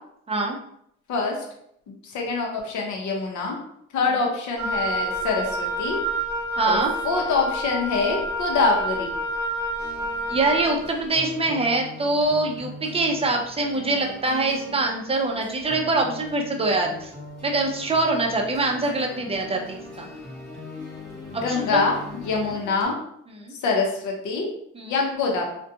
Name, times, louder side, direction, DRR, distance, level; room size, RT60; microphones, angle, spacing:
voice 1, 1.9-3.6 3.9-6.0 6.6-9.1 21.3-23.0 23.6-24.5 24.9-25.4, left 4 dB, 70° left, 0 dB, 0.7 m, -25 dB
Wind instrument woodwind instrument, 4.6-10.8, right 1 dB, 70° right, 0.7 m, -28 dB
voice 2, 6.6-6.9 10.3-17.1 17.4-20.1 21.3-21.8 23.4-23.5 24.7-24.9, right 2 dB, 20° right, 1 dB, 0.5 m, -24 dB
sound 1, 9.8-22.9, left 2 dB, ahead, 0.9 m, -41 dB
2.4 x 2.2 x 2.6 m, 0.72 s
cardioid pair, 90°, 30 cm